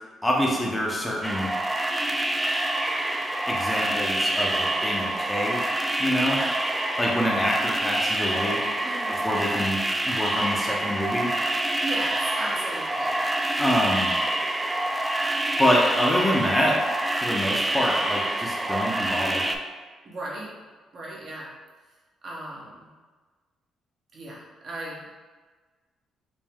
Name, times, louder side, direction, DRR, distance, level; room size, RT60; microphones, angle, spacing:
voice 1, 0.2-1.5 3.5-5.6 6.0-6.4 7.0-8.6 9.2-9.8 10.1-11.3 13.6-14.1 15.6-16.8 17.2-19.5, equal, 10° left, -3 dB, 0.7 m, -26 dB
sound 1, 1.2-19.6, right 1 dB, 10° right, 0.3 m, -26 dB
voice 2, 6.2-6.6 8.8-9.2 11.8-13.3 17.8-18.0 20.0-20.5 20.9-21.5 22.2-22.9 24.1-25.0, right 2 dB, 50° right, -4 dB, 1.1 m, -36 dB
5.2 x 2.0 x 3.5 m, 1.4 s
cardioid pair, 90°, 0 cm